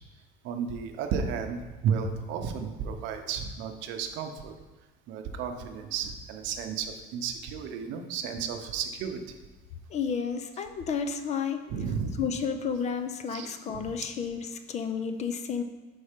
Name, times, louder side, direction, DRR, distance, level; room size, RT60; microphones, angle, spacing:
voice 1, 0.4-4.5 5.1-9.4 11.7-12.2 13.3-13.9, right 6 dB, 65° right, 5 dB, 0.7 m, -33 dB
voice 2, 9.9-11.7 12.2-14.4 14.7-15.6, left 6 dB, 35° left, 8 dB, 0.4 m, -31 dB
5.4 x 4.0 x 5.1 m, 1.2 s
cardioid pair, 145°, 21 cm